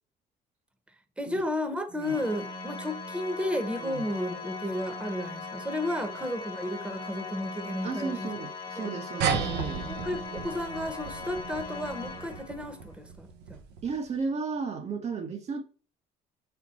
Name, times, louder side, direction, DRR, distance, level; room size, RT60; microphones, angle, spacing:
voice 1, 1.2-8.3 8.8-9.0 9.4-9.5 9.9-13.6, left 1 dB, 5° right, 1.1 m, -33 dB
Organ, 2.0-12.8, left 3 dB, 25° left, 1.3 m, -39 dB
voice 2, 7.8-9.9 13.8-15.6, right 4 dB, 40° right, 1.0 m, -34 dB
sound 1, 9.2-14.1, right 6 dB, 85° right, 1.1 m, -34 dB
5.7 x 4.5 x 4.2 m
cardioid pair, 110°, 17 cm